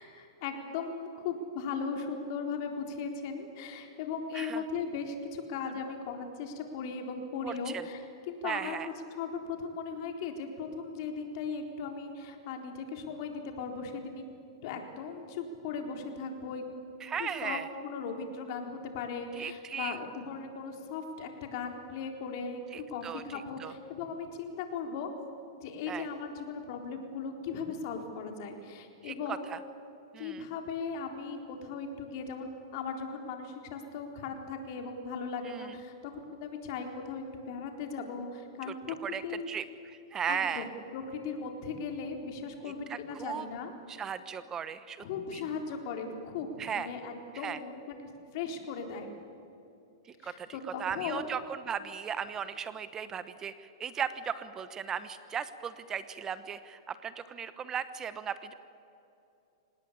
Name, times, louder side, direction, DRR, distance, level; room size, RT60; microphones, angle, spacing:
voice 1, 0.0-14.2 14.6-16.6 17.2-22.6 22.9-25.1 25.6-29.5 30.2-39.0 39.2-39.5 40.3-43.7 45.0-47.9 48.3-49.1 50.2-51.3, left 5 dB, 55° left, 4 dB, 3.9 m, -38 dB
voice 2, 7.4-7.8 8.4-8.9 17.0-17.7 19.4-20.0 22.7-23.7 25.9-26.1 29.0-29.6 30.1-30.5 35.5-35.8 39.0-39.2 39.5-40.7 42.6-43.5 43.9-45.0 45.3-45.4 46.6-46.9 47.4-47.6 50.2-50.5 50.8-51.4 51.7-58.5, right 7 dB, 20° right, 13 dB, 1.0 m, -37 dB
26.0 x 19.0 x 8.6 m, 2.8 s
hypercardioid pair, 130°, 2 cm